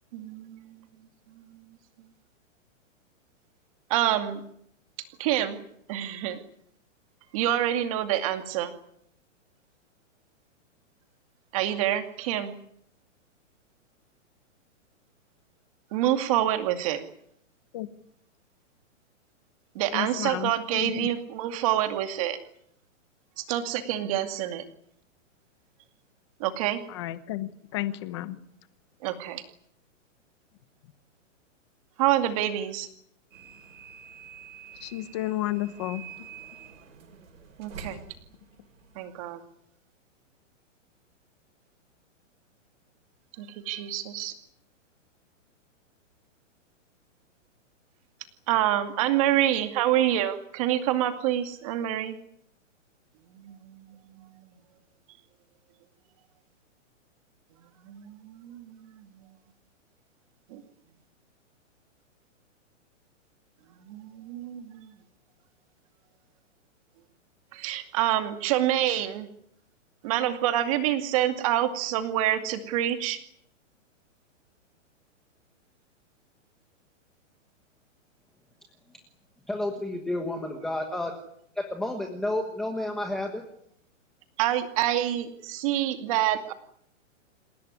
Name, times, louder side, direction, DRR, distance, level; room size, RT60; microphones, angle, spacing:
voice 1, 0.1-0.9 1.3-1.8 3.9-4.4 5.2-5.6 5.9-6.4 7.3-8.7 11.5-12.5 15.9-17.0 19.7-22.4 23.4-24.6 26.4-26.8 29.0-29.4 32.0-32.9 37.6-38.0 39.0-39.4 43.4-44.3 48.5-52.2 53.3-54.5 57.8-59.4 60.5-60.6 63.8-64.9 67.5-69.3 70.0-73.2 84.4-86.5, right 12 dB, 25° right, 7 dB, 2.4 m, -27 dB
voice 2, 19.9-21.1 26.9-28.4 34.8-36.3, left 15 dB, 20° left, 13 dB, 1.1 m, -32 dB
sound 1, 33.3-39.2, right 6 dB, 80° right, 7.4 m, -47 dB
voice 3, 79.5-81.1 81.5-83.4, left 1 dB, ahead, 3 dB, 1.3 m, -30 dB
28.0 x 17.5 x 9.7 m, 0.72 s
hypercardioid pair, 175°, 39 cm